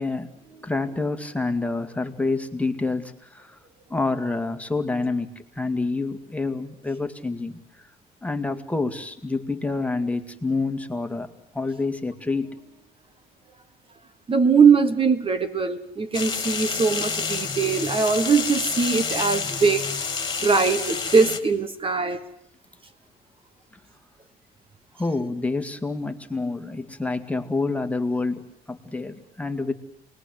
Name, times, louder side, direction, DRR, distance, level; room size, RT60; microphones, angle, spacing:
voice 1, 0.0-3.6 3.9-7.6 8.2-11.3 11.5-12.9 24.9-29.7, left 3 dB, 10° left, 7 dB, 2.2 m, -28 dB
voice 2, 14.3-19.9 20.4-22.2, right 5 dB, 30° right, 12 dB, 1.4 m, -21 dB
sound 1, 16.1-21.4, left 5 dB, 25° left, 2.7 m, -29 dB
28.5 x 21.0 x 7.9 m, 0.72 s
cardioid pair, 110°, 17 cm